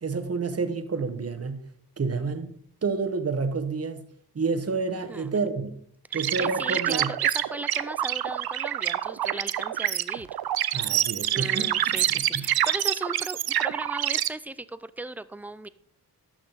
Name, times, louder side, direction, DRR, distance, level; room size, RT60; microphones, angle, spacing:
voice 1, 0.0-1.7 2.0-2.6 2.8-4.0 4.3-5.8 6.1-7.1 10.7-11.7 12.1-12.4, right 4 dB, 40° right, 1.1 m, -29 dB
voice 2, 6.1-10.3 11.3-15.7, right 2 dB, 5° right, 0.4 m, -37 dB
sound 1, 6.1-14.3, right 12 dB, 70° right, 0.5 m, -26 dB
12.0 x 6.1 x 3.9 m
cardioid pair, 80°, 38 cm